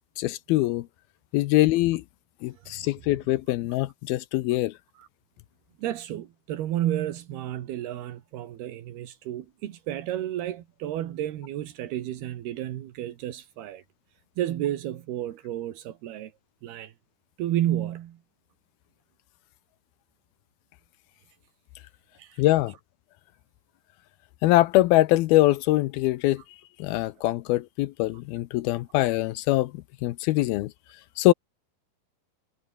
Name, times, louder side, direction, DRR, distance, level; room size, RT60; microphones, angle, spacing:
voice 1, 0.2-0.9 1.3-2.0 2.4-4.7 22.4-22.7 24.4-26.4 26.8-30.7 31.2-31.3, left 17 dB, 80° left, 2.6 m, -23 dB
voice 2, 5.8-13.8 14.4-16.3 16.6-16.9 17.4-18.2 22.2-22.4, right 12 dB, 80° right, 3.6 m, -31 dB
omnidirectional pair, 4.5 m